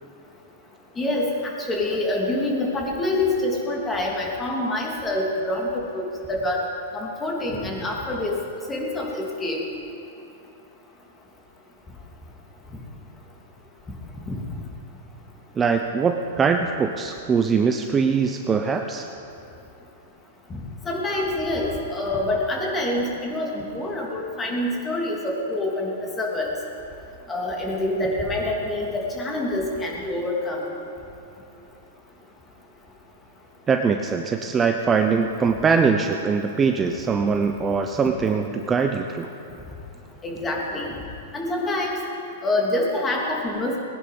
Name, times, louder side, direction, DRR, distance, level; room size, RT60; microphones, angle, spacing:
voice 1, 1.0-6.6 6.9-8.3 8.7-9.6 14.3-14.4 20.5-26.5 27.3-30.6 40.2-40.9 41.3-42.0 42.4-43.8, left 1 dB, 15° left, -2 dB, 2.9 m, -26 dB
voice 2, 15.6-19.1 33.7-39.3, right 5 dB, 20° right, 5 dB, 0.7 m, -22 dB
19.5 x 10.5 x 5.3 m, 2.8 s
hypercardioid pair, 130°, 0 cm